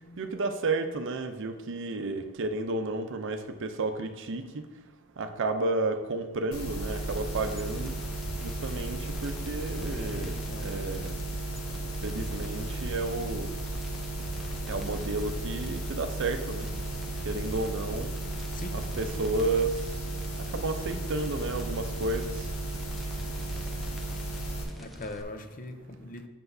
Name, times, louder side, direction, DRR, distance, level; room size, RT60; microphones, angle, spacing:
voice 1, 0.2-4.6 5.2-7.9 8.4-11.2 12.0-13.5 14.7-16.7 17.3-18.1 18.7-19.7 20.4-22.4, right 2 dB, 60° right, 0.6 m, -32 dB
sound 1, 6.5-24.6, right 2 dB, 85° left, 1.5 m, -35 dB
sound 2, 6.9-25.2, equal, ahead, 0.6 m, -45 dB
voice 2, 9.9-10.8 18.5-19.0 24.3-24.5 24.8-26.3, left 2 dB, 40° left, 0.6 m, -42 dB
7.9 x 6.9 x 2.6 m
head